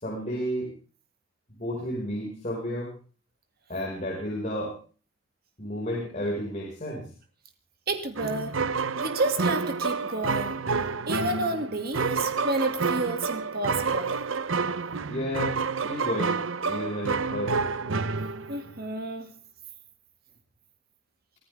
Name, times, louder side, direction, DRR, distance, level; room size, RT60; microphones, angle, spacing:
voice 1, 0.0-0.7 1.5-2.9 3.7-4.7 5.6-7.1 15.1-15.6 15.8-16.4 16.7-17.6, equal, 35° left, -4 dB, 5.5 m, -31 dB
voice 2, 7.9-8.6 9.0-10.6 11.1-14.2 18.5-19.3, right 2 dB, 50° right, 6 dB, 2.4 m, -30 dB
sound 1, 8.1-18.8, right 4 dB, 75° right, 0.8 m, -29 dB
24.5 x 15.0 x 3.6 m, 0.38 s
head